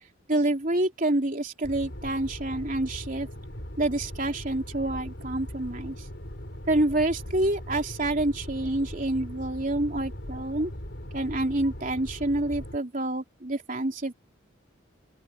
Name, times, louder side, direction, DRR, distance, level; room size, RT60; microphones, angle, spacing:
voice 1, 0.3-3.3 3.8-5.9 6.7-10.7 11.1-14.1, right 1 dB, 40° right, 3.5 m, -27 dB
sound 1, 1.6-12.8, equal, 60° left, 4.9 m, -40 dB
open air
head